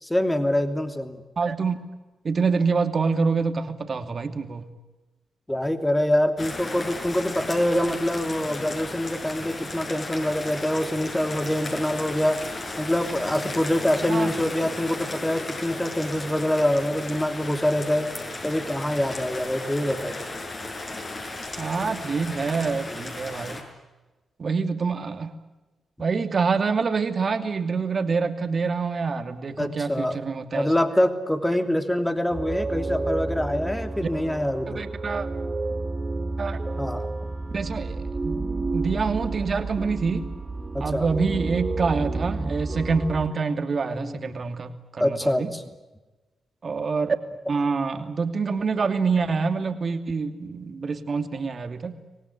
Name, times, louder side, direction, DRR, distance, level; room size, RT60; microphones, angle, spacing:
voice 1, 0.0-1.2 5.5-12.4 12.8-18.1 18.4-20.2 29.6-30.2 30.5-34.8 36.8-37.1 40.7-41.1 42.4-42.5 43.9-44.4 45.0-45.6, left 1 dB, 10° left, 7 dB, 2.9 m, -25 dB
voice 2, 1.4-1.8 2.2-4.7 14.1-14.3 21.6-23.6 24.4-25.4 26.0-30.7 34.7-35.3 36.4-36.6 37.5-38.4 38.7-40.3 40.8-45.5 46.6-47.2 47.5-52.0, right 4 dB, 50° right, 7 dB, 2.7 m, -26 dB
sound 1, 6.4-23.6, left 2 dB, 45° left, 7.0 m, -35 dB
sound 2, 32.3-43.3, right 3 dB, 35° right, 2.1 m, -30 dB
25.5 x 18.5 x 9.8 m, 1.2 s
supercardioid pair, 50°, 0 cm